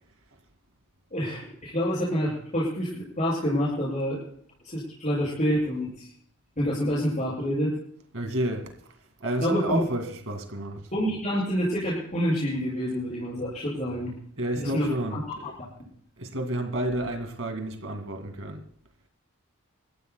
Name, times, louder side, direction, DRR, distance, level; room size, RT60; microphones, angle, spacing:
voice 1, 1.1-4.2 4.6-6.1 6.6-7.7 9.4-9.8 10.9-14.1 14.6-14.8 15.1-15.5, equal, 35° left, 7.4 m, -27 dB
voice 2, 8.1-10.8 14.4-15.5 16.2-18.6, right 1 dB, 60° right, 2.3 m, -31 dB
26.5 x 14.5 x 2.3 m
head